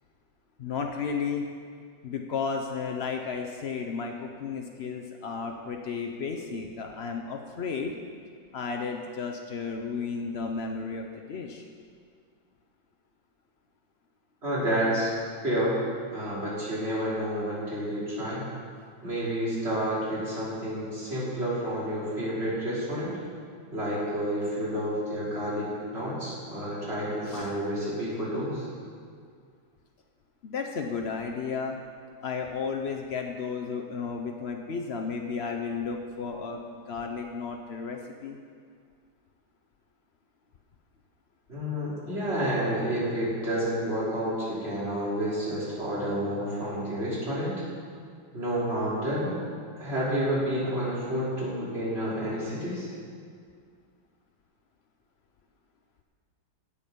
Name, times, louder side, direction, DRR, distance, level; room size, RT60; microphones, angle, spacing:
voice 1, 0.6-1.4 2.0-7.9 8.5-11.6 27.3-27.5 30.4-31.8 32.2-38.4, left 5 dB, 85° left, 3 dB, 0.5 m, -33 dB
voice 2, 14.4-15.1 15.4-15.8 16.1-18.5 19.0-23.1 23.7-28.7 41.5-47.5 48.3-49.3 49.8-52.9, equal, 30° right, -8 dB, 3.9 m, -29 dB
17.0 x 7.0 x 5.2 m, 2.1 s
omnidirectional pair, 2.1 m